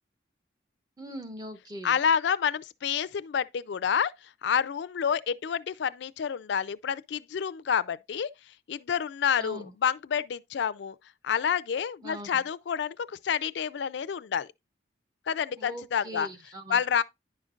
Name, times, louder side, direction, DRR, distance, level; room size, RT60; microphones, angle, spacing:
voice 1, 1.0-2.0 9.4-9.7 12.0-12.4 15.5-17.0, equal, 20° right, 0.6 m, -41 dB
voice 2, 1.8-4.1 4.4-8.3 8.7-11.0 11.2-14.5 15.3-16.3 16.7-17.0, left 7 dB, 70° left, 0.3 m, -28 dB
10.5 x 5.1 x 2.4 m
head